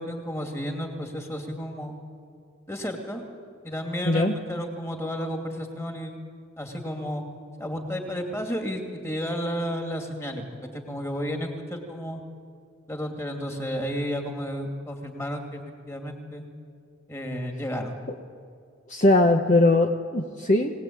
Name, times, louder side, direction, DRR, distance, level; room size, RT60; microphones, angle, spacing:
voice 1, 0.0-2.0 2.7-3.2 3.6-6.2 6.6-7.2 7.6-10.4 10.7-12.2 12.9-15.6 15.9-16.5 17.1-17.9, equal, 15° left, 3 dB, 2.6 m, -32 dB
voice 2, 18.9-20.8, left 2 dB, 40° left, 4 dB, 1.1 m, -20 dB
22.5 x 19.0 x 8.8 m, 2.4 s
head